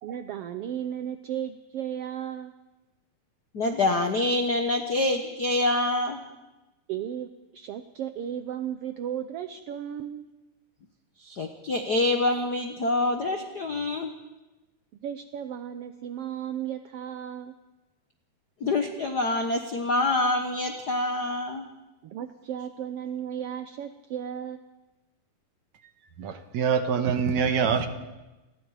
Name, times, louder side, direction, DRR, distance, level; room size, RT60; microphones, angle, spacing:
voice 1, 0.0-2.5 6.9-10.2 14.9-17.5 22.0-24.6, right 10 dB, 85° right, 1.3 m, -35 dB
voice 2, 3.5-6.2 11.2-14.1 18.6-21.6, left 2 dB, 70° left, 0.9 m, -26 dB
voice 3, 26.2-27.9, right 6 dB, 65° right, 2.5 m, -25 dB
28.5 x 20.5 x 4.9 m
omnidirectional pair, 3.7 m